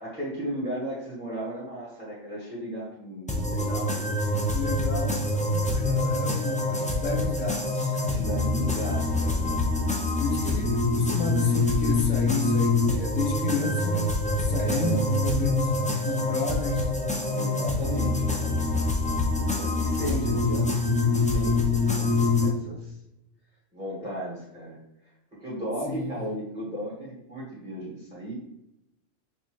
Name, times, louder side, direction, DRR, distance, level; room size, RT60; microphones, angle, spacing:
voice 1, 0.0-4.1 8.0-9.6 10.5-10.6 14.6-15.1 17.3-18.6 19.5-22.9 23.7-24.8 25.3-28.3, right 1 dB, 5° right, -8 dB, 1.4 m, -35 dB
sound 1, 3.3-22.5, left 2 dB, 10° left, 0.3 m, -25 dB
voice 2, 4.5-8.3 10.2-15.8 16.0-16.9 25.9-26.2, left 2 dB, 75° left, 2 dB, 1.0 m, -32 dB
6.1 x 2.6 x 3.1 m, 0.88 s
omnidirectional pair, 1.3 m